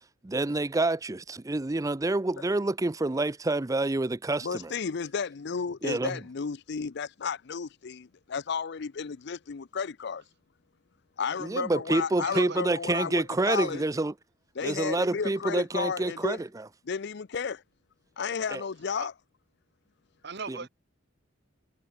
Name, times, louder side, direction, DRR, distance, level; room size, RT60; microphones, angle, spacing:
voice 1, 0.2-4.7 5.8-6.2 11.4-14.1 14.6-16.6 18.5-18.6 20.5-20.6, right 2 dB, 15° right, 0.5 m, -28 dB
voice 2, 4.4-10.2 11.2-13.8 14.5-16.4 16.9-17.6 18.2-19.1, left 6 dB, 60° left, 0.5 m, -33 dB
voice 3, 12.2-12.6 19.0-19.1 20.2-20.7, right 5 dB, 60° right, 1.6 m, -37 dB
head